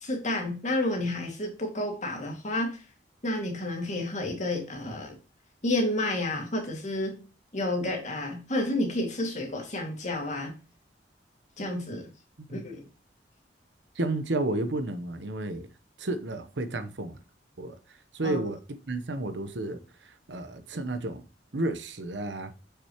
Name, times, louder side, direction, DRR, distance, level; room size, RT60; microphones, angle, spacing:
voice 1, 0.0-2.8 3.2-5.2 5.6-7.2 7.5-10.5 11.6-12.1 12.5-12.8 18.2-18.4, left 1 dB, 45° left, 2.2 m, -30 dB
voice 2, 13.9-15.7 16.0-17.2 17.6-18.6 18.9-21.2 21.5-22.5, right 2 dB, 85° right, 0.9 m, -32 dB
6.7 x 6.0 x 3.0 m
head